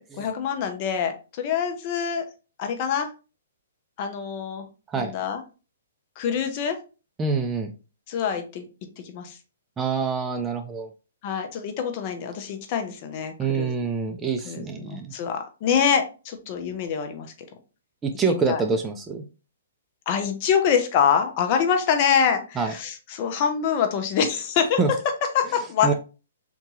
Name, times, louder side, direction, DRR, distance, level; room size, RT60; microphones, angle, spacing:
voice 1, 0.2-2.2 2.6-3.1 4.0-4.7 5.0-5.4 6.2-6.8 8.1-8.6 9.0-9.4 11.2-13.7 14.4-17.3 18.3-18.6 20.1-24.8 25.3-25.9, left 7 dB, 35° left, 5 dB, 0.8 m, -25 dB
voice 2, 7.2-7.7 9.8-10.9 13.4-15.1 18.0-19.3 22.6-22.7 24.8-24.9 25.8-25.9, right 5 dB, 15° right, 5 dB, 0.4 m, -26 dB
3.6 x 2.7 x 3.0 m, 0.32 s
hypercardioid pair, 145°, 0 cm